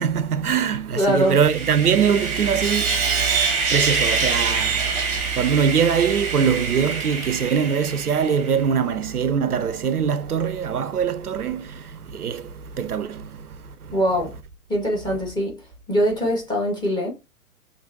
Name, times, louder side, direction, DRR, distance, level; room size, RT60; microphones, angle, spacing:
voice 1, 0.0-14.0, right 7 dB, 80° right, 0.6 m, -23 dB
voice 2, 1.0-1.4 13.9-14.3 14.7-15.6 15.9-17.1, equal, 10° left, 1.7 m, -22 dB
Sawing, 1.1-8.5, right 5 dB, 15° right, 1.2 m, -25 dB
5.8 x 3.0 x 2.8 m
figure-of-eight pair, 110°, 44 cm